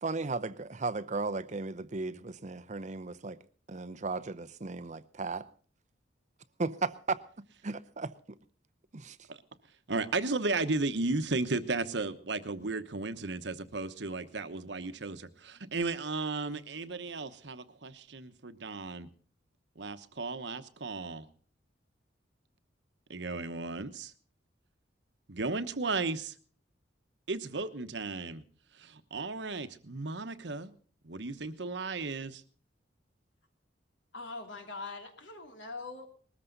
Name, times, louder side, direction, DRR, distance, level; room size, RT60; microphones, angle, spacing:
voice 1, 0.0-3.4 3.7-5.5 6.6-7.2 7.6-8.4 8.9-9.2, right 3 dB, 40° right, 0.7 m, -35 dB
voice 2, 9.9-19.1 19.8-21.3 23.1-24.1 25.3-26.3 27.3-28.4 28.7-30.7 31.0-32.4, right 3 dB, 65° right, 1.1 m, -35 dB
voice 3, 34.1-36.1, left 3 dB, 75° left, 3.2 m, -42 dB
20.5 x 14.0 x 4.0 m
head